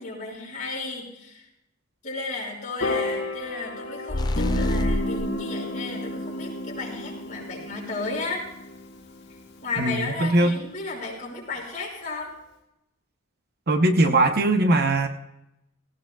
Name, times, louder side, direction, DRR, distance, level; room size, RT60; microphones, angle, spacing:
voice 1, 0.0-1.5 2.0-8.4 9.6-12.3, left 3 dB, 35° left, -3 dB, 5.7 m, -34 dB
Piano, 2.8-9.2, left 3 dB, 75° left, 3.7 m, -36 dB
sound 1, 4.1-5.3, left 1 dB, 20° left, 0.4 m, -26 dB
Guitar, 4.4-9.9, equal, 50° left, 1.8 m, -32 dB
voice 2, 9.8-10.5 13.7-15.1, right 2 dB, 45° right, 6 dB, 0.9 m, -20 dB
18.0 x 17.5 x 2.3 m, 0.84 s
head